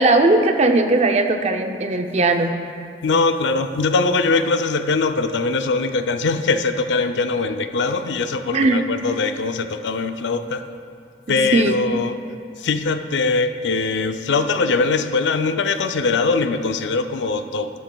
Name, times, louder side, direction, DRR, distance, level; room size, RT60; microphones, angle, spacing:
voice 1, 0.0-2.5 8.5-8.9 11.3-11.7, right 2 dB, 40° right, 6 dB, 0.5 m, -18 dB
voice 2, 3.0-10.6 11.3-12.2 12.6-17.7, left 4 dB, 90° left, 8 dB, 0.5 m, -21 dB
12.0 x 10.5 x 2.3 m, 2.3 s
head